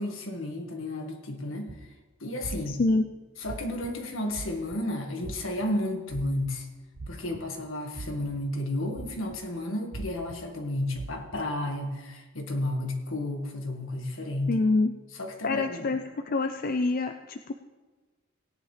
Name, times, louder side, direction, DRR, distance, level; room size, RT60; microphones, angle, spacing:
voice 1, 0.0-1.8 2.2-2.8 3.4-6.7 7.1-14.6 15.1-16.0, left 1 dB, 70° left, 2 dB, 1.7 m, -32 dB
sound 1, 1.7-1.9 2.4-2.9 3.4-3.9 4.3-4.8 5.2-5.7 6.1-6.5 6.9-7.6 7.9-8.4 8.9-9.4 9.9-10.4 10.9-11.4, right 3 dB, 60° right, 0.6 m, -39 dB
voice 2, 2.7-3.1 14.5-14.9 15.4-16.0 16.3-17.5, left 3 dB, 45° left, 7 dB, 0.4 m, -26 dB
17.5 x 10.0 x 3.3 m, 1.3 s
head